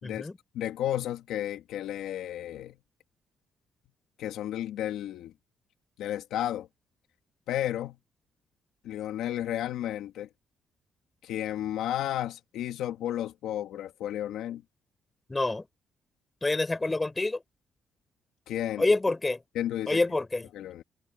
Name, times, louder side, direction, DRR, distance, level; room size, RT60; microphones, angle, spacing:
voice 1, 0.0-0.4 15.3-15.7 16.4-17.4 18.8-19.4 19.9-20.5, left 2 dB, 20° left, 4.7 m, -27 dB
voice 2, 0.5-2.8 4.2-5.3 6.0-6.7 7.5-8.0 8.8-10.3 11.2-14.6 18.5-18.8 19.5-20.0 20.5-20.8, left 12 dB, 85° left, 2.0 m, -32 dB
cardioid pair, 90°, 0 cm